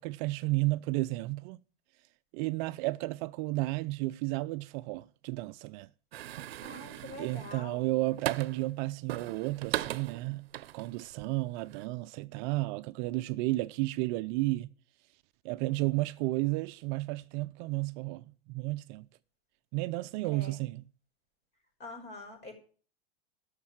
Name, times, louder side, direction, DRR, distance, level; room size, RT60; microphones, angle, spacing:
voice 1, 0.0-1.6 2.3-5.9 7.1-10.5 10.7-14.7 15.4-19.1 19.7-20.8, right 20 dB, 50° right, 0.5 m, -32 dB
sound 1, 6.1-8.7 9.1-11.2 11.6-11.9, right 13 dB, 85° right, 0.7 m, -38 dB
voice 2, 6.6-7.9 20.2-20.6 21.8-22.5, left 2 dB, 35° left, 5.6 m, -45 dB
12.0 x 6.6 x 8.7 m
hypercardioid pair, 120°, 30 cm